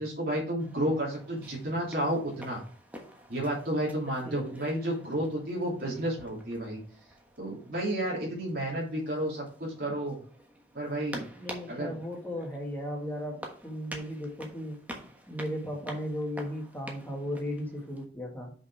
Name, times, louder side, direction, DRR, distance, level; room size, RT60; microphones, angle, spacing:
voice 1, 0.0-2.6 3.3-6.8 7.4-10.2 10.7-11.3 11.7-11.9, right 1 dB, 55° right, -5 dB, 2.9 m, -31 dB
sound 1, 0.6-18.0, right 1 dB, 10° right, 1.2 m, -48 dB
voice 2, 4.2-4.6 9.8-10.0 11.3-14.8 15.3-18.5, equal, 10° left, 0 dB, 2.0 m, -36 dB
6.1 x 5.4 x 4.8 m, 0.43 s
head